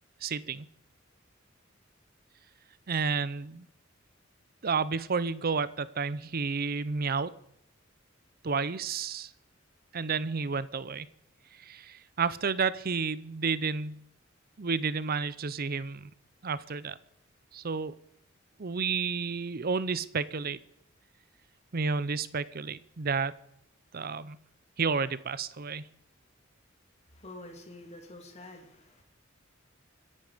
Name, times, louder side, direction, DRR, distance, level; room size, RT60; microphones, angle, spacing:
voice 1, 0.2-0.7 2.9-3.7 4.6-7.3 8.4-9.3 9.9-11.1 11.6-14.0 14.6-16.1 16.4-17.0 17.5-17.9 18.6-20.6 21.7-23.3 23.9-24.4 24.8-25.9, right 5 dB, 50° right, 17 dB, 0.7 m, -31 dB
voice 2, 27.1-29.0, left 2 dB, 35° left, 3 dB, 3.0 m, -47 dB
25.0 x 11.0 x 5.1 m, 0.74 s
head